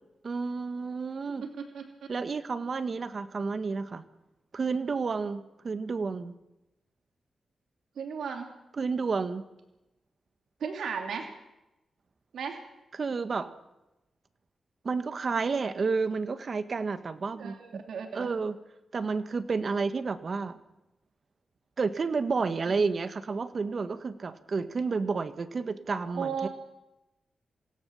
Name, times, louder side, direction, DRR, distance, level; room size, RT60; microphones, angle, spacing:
voice 1, 0.2-1.4 2.1-4.0 4.5-6.3 8.8-9.5 12.9-13.5 14.8-17.8 18.1-18.6 18.9-20.6 21.8-26.5, right 4 dB, 50° right, 11 dB, 1.6 m, -31 dB
voice 2, 1.4-1.9 8.0-8.5 10.6-11.3 12.3-12.6 17.3-18.3 22.6-22.8 26.1-26.5, right 6 dB, 85° right, 3 dB, 3.0 m, -35 dB
27.0 x 17.0 x 7.2 m, 0.94 s
cardioid pair, 75°, 0 cm